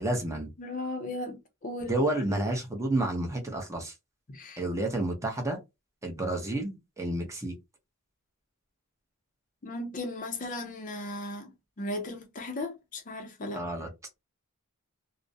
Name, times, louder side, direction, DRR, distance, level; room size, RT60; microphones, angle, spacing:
voice 1, 0.0-0.5 1.9-3.9 4.6-5.6 6.0-7.5 13.5-13.9, right 1 dB, 15° right, 0.6 m, -30 dB
voice 2, 0.6-2.2 4.3-4.6 9.6-11.5 11.8-13.6, left 2 dB, 35° left, 0.5 m, -36 dB
2.3 x 2.0 x 2.6 m
head